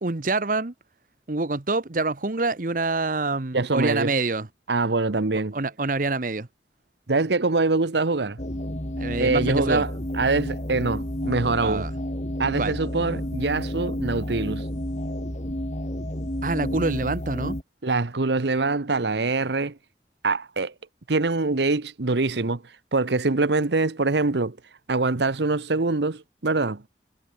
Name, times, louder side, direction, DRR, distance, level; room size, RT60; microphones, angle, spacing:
voice 1, 0.0-0.7 1.3-4.5 5.3-6.5 9.0-9.8 11.6-11.9 12.6-12.8 16.4-17.6, right 3 dB, 50° right, 1.0 m, -26 dB
voice 2, 3.5-4.1 4.7-5.6 7.1-8.4 9.2-9.9 10.2-11.8 12.4-14.7 17.8-19.7 20.2-20.7 21.1-22.6 22.9-24.6 24.9-26.8, right 3 dB, 80° right, 1.0 m, -24 dB
sound 1, 8.4-17.6, equal, 40° left, 3.7 m, -31 dB
head